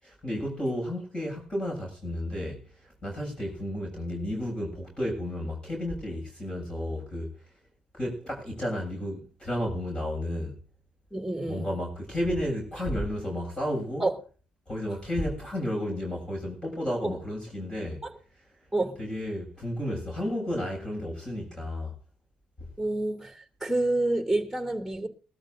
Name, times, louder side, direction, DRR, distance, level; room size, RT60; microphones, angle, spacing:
voice 1, 0.0-7.4 7.9-10.6 11.5-14.1 14.7-18.1 19.0-21.9 22.6-22.7, left 1 dB, 30° left, 7.5 m, -32 dB
voice 2, 11.1-11.7 14.0-14.1 17.0-17.1 18.7-19.0 22.8-25.1, right 2 dB, ahead, 2.8 m, -28 dB
21.5 x 13.0 x 2.7 m
cardioid pair, 100°, 3 cm